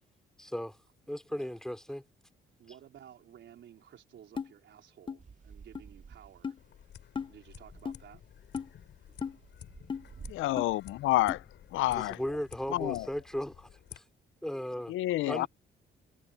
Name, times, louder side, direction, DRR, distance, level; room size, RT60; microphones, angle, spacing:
voice 1, 0.4-0.8 1.1-2.0 11.9-14.0 14.4-14.9 15.3-15.5, equal, 5° left, 3.8 m, -36 dB
voice 2, 2.6-6.5 7.3-8.2, right 10 dB, 70° right, 4.3 m, -54 dB
sound 1, 4.4-4.5 5.1-5.2 5.7-5.8 6.4-6.6 7.2-7.3 7.8-8.0 8.5-8.7 9.2-9.4 9.9-10.0 10.6-10.7 11.3-11.4, left 6 dB, 25° left, 0.6 m, -35 dB
sound 2, 5.2-6.9 7.3-10.3, right 5 dB, 40° right, 2.4 m, -52 dB
sound 3, 6.6-14.0, left 10 dB, 65° left, 4.5 m, -53 dB
voice 3, 10.3-11.4 11.7-12.2 12.7-13.1 14.9-15.5, left 16 dB, 85° left, 0.6 m, -29 dB
cardioid pair, 90°, 20 cm